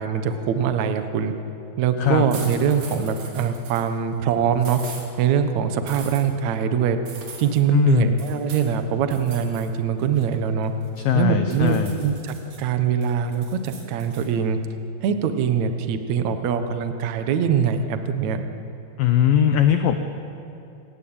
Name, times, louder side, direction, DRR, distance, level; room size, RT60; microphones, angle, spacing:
voice 1, 0.0-1.3 1.8-4.8 5.2-7.0 7.4-10.7 11.1-14.6 15.0-18.4, right 7 dB, 75° right, 8 dB, 1.7 m, -23 dB
sound 1, 2.3-3.9 4.6-5.1 5.9-6.2 7.1-7.6 8.2-8.7 9.1-9.7 10.0-11.1 11.5-12.6 13.0-14.3, right 4 dB, 50° right, 4.5 m, -41 dB
voice 2, 7.7-8.2 11.0-12.0 19.0-19.9, left 9 dB, 85° left, 7 dB, 2.0 m, -19 dB
27.5 x 17.0 x 8.8 m, 2.8 s
omnidirectional pair, 5.3 m